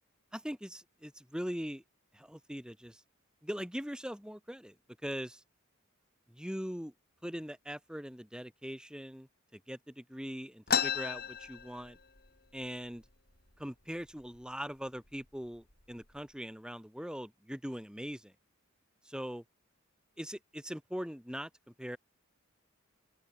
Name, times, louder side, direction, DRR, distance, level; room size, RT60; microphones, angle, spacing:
voice 1, 0.3-1.8 2.1-3.0 3.4-4.7 5.0-5.4 6.3-6.9 7.2-9.3 9.5-12.0 12.5-13.0 13.6-18.3 19.1-19.4 20.2-21.5 21.8-22.0, equal, 5° right, 5.9 m, -41 dB
sound 1, 10.7-12.3 12.6-12.7 13.0-13.6 14.2-14.4 15.1-15.2 15.7-16.2, left 7 dB, 50° left, 5.9 m, -33 dB
open air
head